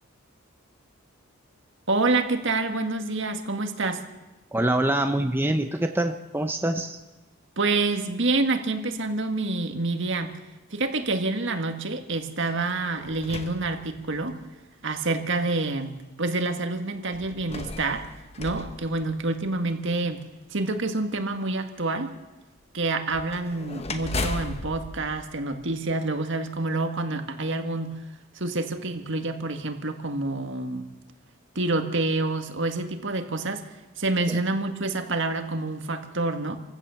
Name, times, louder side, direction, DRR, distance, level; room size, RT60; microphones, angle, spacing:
voice 1, 1.9-4.0 7.6-10.3 10.7-14.4 14.8-18.1 18.4-22.1 22.7-27.9 28.3-30.9 31.6-33.6 34.0-36.6, right 3 dB, 60° right, 6 dB, 1.9 m, -27 dB
voice 2, 4.5-7.0 34.3-34.4, right 1 dB, 10° right, 5 dB, 0.9 m, -25 dB
sound 1, 12.5-14.4 15.2-15.3 17.1-19.7 23.1-26.2, left 2 dB, 30° left, 1.2 m, -37 dB
27.5 x 16.0 x 7.1 m, 1.1 s
head